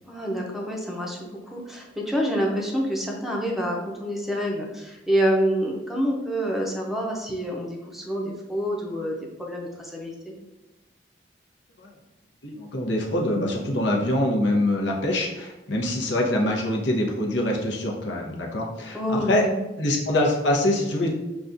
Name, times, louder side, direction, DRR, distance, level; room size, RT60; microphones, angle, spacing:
voice 1, 0.1-10.3 18.9-19.5, equal, ahead, -1 dB, 0.6 m, -27 dB
voice 2, 12.4-19.4 19.8-21.1, left 1 dB, 90° left, 0 dB, 0.8 m, -24 dB
6.0 x 2.3 x 2.6 m, 1.0 s
head